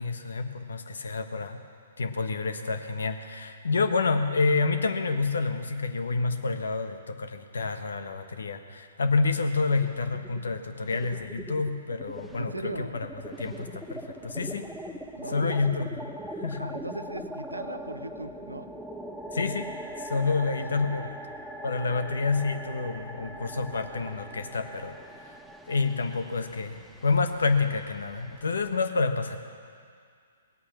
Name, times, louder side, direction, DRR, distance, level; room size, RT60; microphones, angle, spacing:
voice 1, 0.0-1.6 2.0-14.7 15.3-15.9 16.4-16.7 19.3-19.7 20.0-21.0 21.6-24.9 25.7-29.4, left 4 dB, 70° left, 8 dB, 1.2 m, -28 dB
sound 1, 9.7-10.5 10.8-28.8, right 1 dB, ahead, 0.8 m, -41 dB
voice 2, 12.3-13.0 15.2-15.9 16.6-18.7 20.3-21.1, right 2 dB, 90° right, 11 dB, 0.8 m, -38 dB
18.5 x 8.6 x 7.5 m, 2.2 s
figure-of-eight pair, 120°, 0 cm